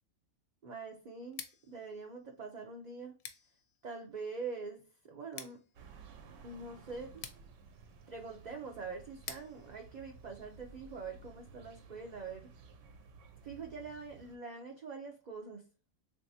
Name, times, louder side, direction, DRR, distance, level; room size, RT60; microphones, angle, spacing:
voice 1, 0.6-1.4 1.7-3.2 3.8-5.6 6.4-7.2 8.1-12.5 13.4-15.6, right 4 dB, 55° right, 0.5 m, -44 dB
Scissors, 1.2-11.1, left 8 dB, 65° left, 0.7 m, -53 dB
sound 1, 5.7-14.4, right 4 dB, 75° right, 1.0 m, -56 dB
3.5 x 2.7 x 2.6 m
omnidirectional pair, 1.4 m